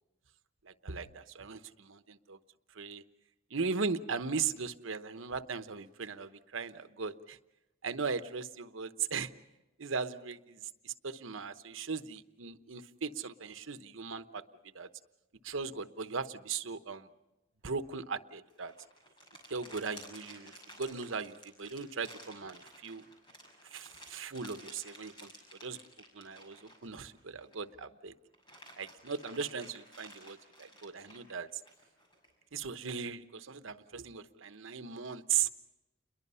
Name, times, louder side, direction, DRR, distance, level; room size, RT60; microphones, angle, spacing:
voice 1, 0.6-2.4 2.7-3.0 3.5-7.4 7.8-9.3 9.8-14.4 14.7-14.9 15.4-17.1 17.6-18.7 19.5-23.0 23.7-25.3 25.6-25.8 26.1-28.1 28.8-31.5 32.5-35.5, right 5 dB, 85° right, 11 dB, 1.0 m, -38 dB
sound 1, 18.5-27.7 28.1-32.3, equal, 25° left, 6.3 m, -54 dB
29.5 x 22.0 x 5.6 m, 1.0 s
head